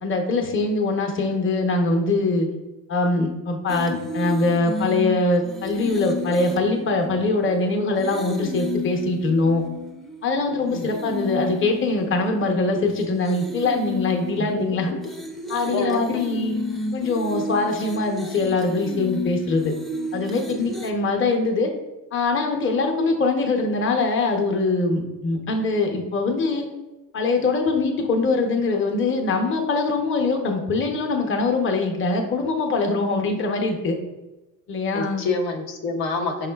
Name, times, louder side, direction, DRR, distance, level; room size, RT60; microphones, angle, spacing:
voice 1, 0.0-2.5 2.9-9.6 10.2-14.9 15.5-16.5 16.9-19.7 20.1-21.7 22.1-26.6 27.1-34.0 34.7-35.2, left 3 dB, 30° left, 3 dB, 0.7 m, -23 dB
sound 1, 3.7-10.3 10.7-20.9, left 3 dB, ahead, 0.4 m, -32 dB
voice 2, 14.4-15.0 15.7-16.0 34.9-36.5, left 3 dB, 90° left, 2 dB, 0.7 m, -27 dB
5.5 x 3.6 x 2.3 m, 1.1 s
cardioid pair, 90°, 38 cm